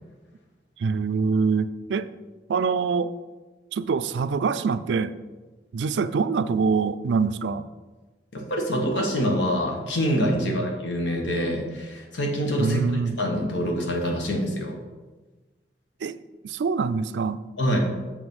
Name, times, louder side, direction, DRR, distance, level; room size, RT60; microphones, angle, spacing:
voice 1, 0.8-2.1 2.5-3.1 3.7-5.1 5.7-7.7 10.3-10.7 12.6-13.2 16.0-16.2 16.4-17.4, right 5 dB, 80° right, 13 dB, 0.3 m, -25 dB
voice 2, 8.3-12.8 13.2-14.8 17.6-17.8, equal, 90° left, 1 dB, 1.5 m, -25 dB
6.9 x 4.9 x 5.4 m, 1.2 s
head